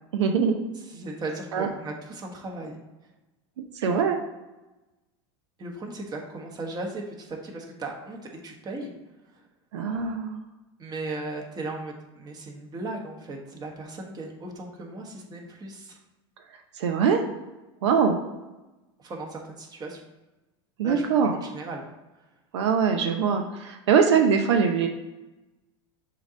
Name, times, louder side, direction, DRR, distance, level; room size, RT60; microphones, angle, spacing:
voice 1, 0.1-0.5 1.5-1.7 3.7-4.2 9.7-10.4 16.7-17.2 17.8-18.2 20.8-21.4 22.5-24.9, right 6 dB, 85° right, 5 dB, 0.7 m, -22 dB
voice 2, 0.7-2.8 3.8-4.0 5.6-8.9 9.3-9.5 10.8-16.0 19.0-20.1 20.8-21.9 22.1-22.3, right 2 dB, 30° right, 0 dB, 1.3 m, -37 dB
7.0 x 2.9 x 5.0 m, 1.1 s
supercardioid pair, 110°, 14 cm